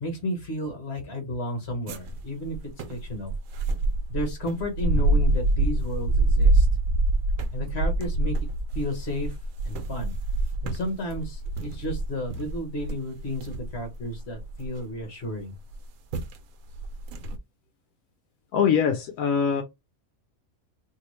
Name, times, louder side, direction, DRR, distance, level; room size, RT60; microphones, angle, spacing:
voice 1, 0.0-2.6 2.9-3.3 4.1-6.7 7.5-8.4 8.7-9.3 9.6-10.1 10.6-15.5, left 1 dB, 50° left, 1.6 m, -32 dB
sound 1, 1.9-15.0 15.7-15.8 16.1-16.4 16.7-17.4, right 2 dB, 75° right, 1.0 m, -26 dB
voice 2, 18.5-19.6, left 7 dB, 80° left, 1.0 m, -22 dB
3.6 x 2.6 x 3.1 m
omnidirectional pair, 1.4 m